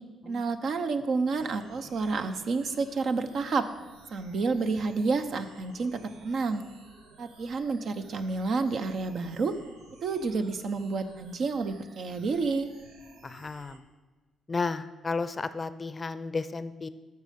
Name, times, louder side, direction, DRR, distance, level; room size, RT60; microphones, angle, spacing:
voice 1, 0.3-3.7 4.1-6.6 7.2-9.6 10.0-12.7, right 4 dB, 60° right, 9 dB, 0.8 m, -29 dB
sound 1, 1.3-13.8, right 3 dB, 90° right, 1.1 m, -55 dB
voice 2, 13.2-13.8 14.5-16.9, left 4 dB, 30° left, 13 dB, 0.5 m, -33 dB
11.5 x 6.6 x 5.2 m, 1.3 s
cardioid pair, 90°, 0 cm